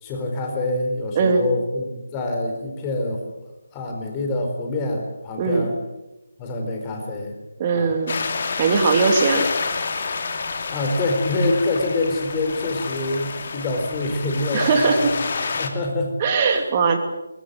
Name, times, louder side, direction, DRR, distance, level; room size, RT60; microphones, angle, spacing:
voice 1, 0.0-3.2 3.7-5.7 6.4-7.4 7.7-8.0 10.7-15.1 15.6-16.1 16.5-16.6, left 2 dB, 15° left, 2 dB, 4.3 m, -26 dB
voice 2, 1.1-1.5 5.4-5.7 7.6-8.2 8.6-9.5 14.5-15.0 16.2-17.0, right 4 dB, 25° right, 4 dB, 2.8 m, -19 dB
sound 1, 8.1-15.7, left 4 dB, 40° left, 2.8 m, -28 dB
23.0 x 21.5 x 7.9 m, 0.96 s
figure-of-eight pair, 155°, 0 cm